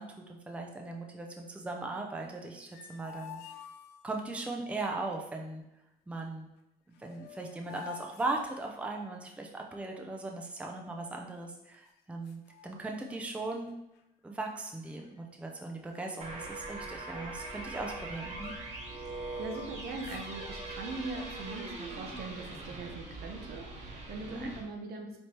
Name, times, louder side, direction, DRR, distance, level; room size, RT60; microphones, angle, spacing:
voice 1, 0.0-3.4 4.0-5.6 6.1-6.5 7.0-13.7 14.2-18.5 24.3-24.6, right 2 dB, 5° right, 1 dB, 0.5 m, -38 dB
sound 1, 2.4-4.4 6.6-6.7 6.9-9.2 10.5-11.3 11.9-12.0 12.2-13.4 13.7-14.0 14.6-15.2 15.5-15.7 15.9-18.8 19.2-20.3, left 9 dB, 85° left, 0.5 m, -51 dB
sound 2, 16.2-24.6, right 2 dB, 40° right, 1.1 m, -42 dB
voice 2, 19.0-25.2, right 3 dB, 65° right, 3 dB, 0.8 m, -41 dB
4.3 x 3.2 x 2.9 m, 0.86 s
cardioid pair, 110°, 17 cm